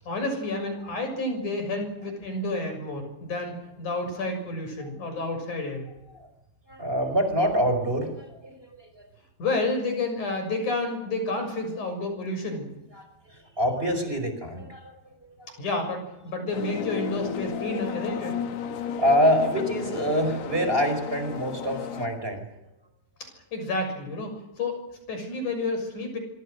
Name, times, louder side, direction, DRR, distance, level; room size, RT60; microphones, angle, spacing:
voice 1, 0.1-5.9 9.4-12.8 15.6-18.4 23.5-26.2, left 2 dB, 50° left, 5 dB, 7.9 m, -30 dB
voice 2, 6.7-9.1 12.9-15.5 19.0-22.5, equal, 15° right, 6 dB, 4.9 m, -26 dB
sound 1, 16.5-22.1, left 8 dB, 90° left, 3.9 m, -33 dB
25.5 x 25.0 x 6.6 m, 0.88 s
omnidirectional pair, 4.5 m